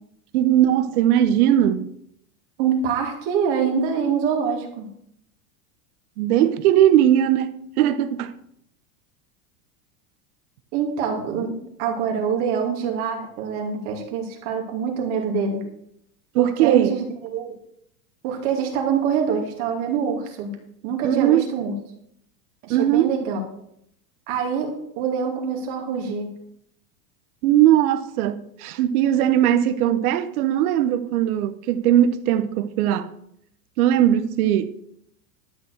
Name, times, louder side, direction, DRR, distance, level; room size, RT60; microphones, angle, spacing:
voice 1, 0.3-1.9 6.2-8.3 16.3-17.0 21.0-21.4 22.7-23.1 27.4-33.1 33.8-34.7, right 11 dB, 75° right, 0.9 m, -19 dB
voice 2, 2.6-4.9 10.7-15.6 16.4-17.5 18.2-20.5 20.8-21.7 22.6-23.4 24.3-26.3, right 6 dB, 50° right, 2.6 m, -25 dB
12.0 x 4.6 x 7.9 m
supercardioid pair, 165°, 45 cm